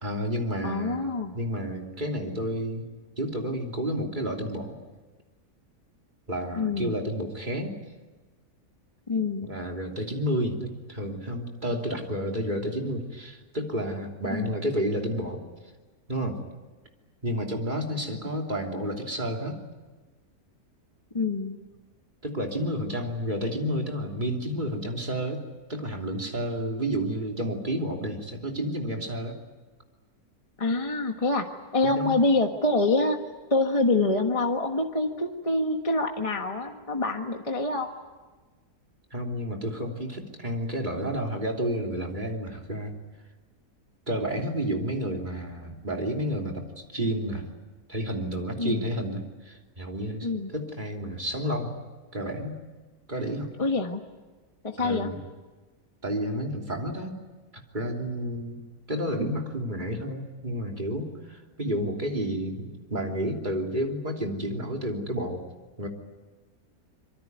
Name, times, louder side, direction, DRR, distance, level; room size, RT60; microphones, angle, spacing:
voice 1, 0.0-1.0 1.3-2.9 3.2-4.8 6.3-7.7 9.4-15.4 16.1-16.4 17.2-19.6 22.2-25.4 25.7-29.4 31.8-32.2 39.1-43.0 44.1-47.5 47.9-51.7 52.1-52.6 53.1-53.5 54.8-55.2 56.0-57.1 57.5-58.6 58.9-65.4 65.8-65.9, equal, 30° right, 2 dB, 3.3 m, -30 dB
voice 2, 0.6-1.3 6.6-7.0 9.1-9.5 14.3-14.5 21.1-21.5 30.6-33.2 33.5-37.9 48.6-48.9 50.2-50.5 53.6-54.0 54.6-55.1, left 2 dB, 25° left, 4 dB, 1.4 m, -26 dB
25.0 x 23.5 x 9.5 m, 1.3 s
omnidirectional pair, 1.6 m